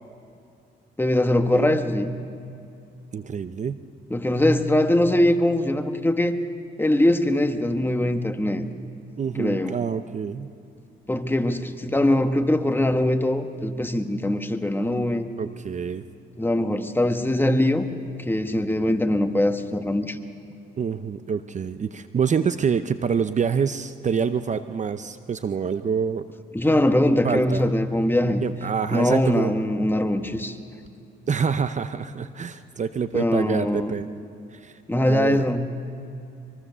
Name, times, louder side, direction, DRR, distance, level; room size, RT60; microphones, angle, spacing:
voice 1, 1.0-2.2 4.1-6.4 6.8-8.6 9.4-9.8 11.1-15.3 16.4-17.9 18.3-20.2 26.5-28.4 28.9-30.6 33.1-33.9 34.9-35.7, left 1 dB, 10° left, 7 dB, 1.3 m, -22 dB
voice 2, 3.1-3.8 9.2-10.5 15.4-16.0 20.8-26.2 27.2-27.6 28.4-29.5 31.3-34.1 34.5-34.8 35.1-35.4, right 6 dB, 35° right, 11 dB, 0.7 m, -26 dB
24.0 x 23.0 x 6.8 m, 2.5 s
cardioid pair, 90°, 20 cm